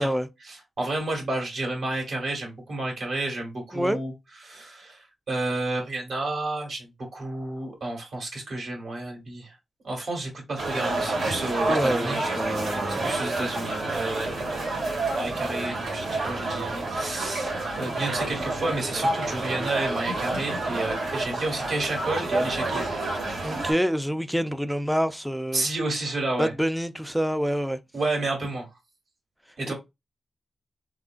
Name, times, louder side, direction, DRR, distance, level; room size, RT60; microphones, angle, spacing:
voice 1, 0.5-4.1 4.4-9.5 9.8-12.2 12.9-22.9 25.5-26.5 27.9-28.7 29.6-29.7, right 2 dB, 70° right, 2.1 m, -31 dB
sound 1, 10.6-23.7, right 2 dB, 90° right, 2.4 m, -29 dB
voice 2, 11.7-13.1 23.4-25.7 26.4-27.8 29.7-29.8, equal, ahead, 0.4 m, -27 dB
3.6 x 3.6 x 2.5 m
wide cardioid pair, 105°, 0 cm